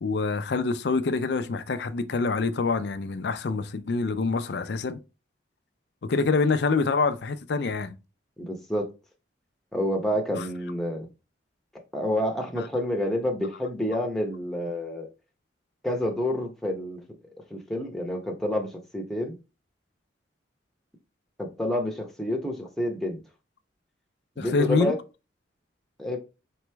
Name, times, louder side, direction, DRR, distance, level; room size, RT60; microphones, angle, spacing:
voice 1, 0.0-5.0 6.0-7.9 10.3-10.4 24.4-24.9, left 4 dB, 60° left, 0.4 m, -26 dB
voice 2, 8.4-8.9 9.7-11.1 11.9-15.1 15.8-17.0 17.5-19.4 21.4-23.2 24.4-25.0 26.0-26.2, left 1 dB, ahead, 0.8 m, -28 dB
4.1 x 3.0 x 3.3 m
head